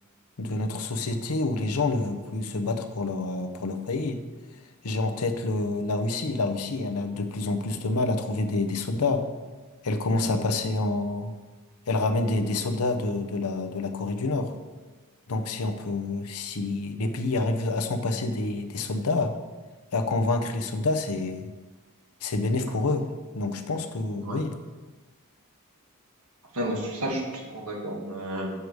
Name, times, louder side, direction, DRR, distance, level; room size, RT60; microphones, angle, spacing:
voice 1, 0.4-4.2 4.8-9.2 9.8-11.3 11.9-14.5 15.3-19.3 19.9-21.5 22.2-23.1 23.3-24.5, left 2 dB, 85° left, 7 dB, 0.8 m, -27 dB
voice 2, 26.5-28.5, right 1 dB, 75° right, 0 dB, 1.6 m, -31 dB
6.8 x 4.7 x 6.5 m, 1.3 s
head